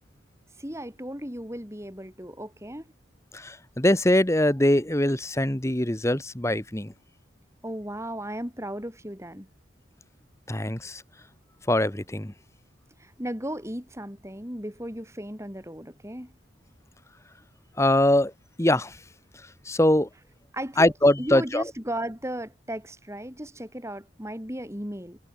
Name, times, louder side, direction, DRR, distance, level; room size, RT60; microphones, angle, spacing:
voice 1, 0.6-2.9 7.6-9.5 13.0-16.3 20.5-25.2, right 1 dB, 15° right, 7.5 m, -36 dB
voice 2, 3.3-6.9 10.5-11.0 11.7-12.3 17.8-18.3 18.6-19.0 19.6-20.1 20.8-21.6, left 1 dB, 15° left, 1.3 m, -22 dB
head